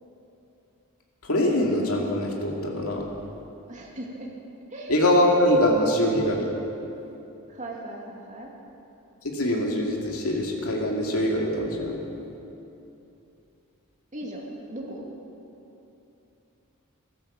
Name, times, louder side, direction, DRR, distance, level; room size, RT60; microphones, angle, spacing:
voice 1, 1.3-3.0 4.9-6.5 9.3-12.0, left 1 dB, 75° left, -1 dB, 2.4 m, -23 dB
voice 2, 3.7-4.3 4.7-5.0 7.5-8.5 14.1-15.1, right 1 dB, 35° right, -1 dB, 2.4 m, -38 dB
15.0 x 13.0 x 7.2 m, 2.9 s
head